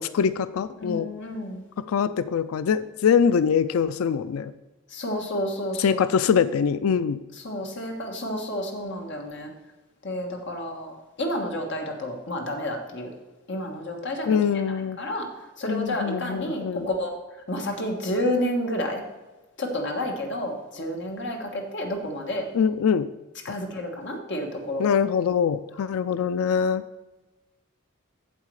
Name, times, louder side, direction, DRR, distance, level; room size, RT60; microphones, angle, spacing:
voice 1, 0.0-1.1 1.9-4.5 5.8-7.2 14.3-15.0 15.7-16.9 22.5-23.1 23.5-23.6 24.8-26.8, left 7 dB, 75° left, 14 dB, 0.4 m, -23 dB
voice 2, 0.8-1.6 4.9-6.0 7.4-9.5 10.0-13.1 13.5-14.4 14.6-15.3 15.6-17.1 17.5-19.0 19.6-22.5 23.4-24.9, left 1 dB, 55° left, 2 dB, 1.5 m, -30 dB
8.5 x 7.4 x 4.8 m, 1.1 s
head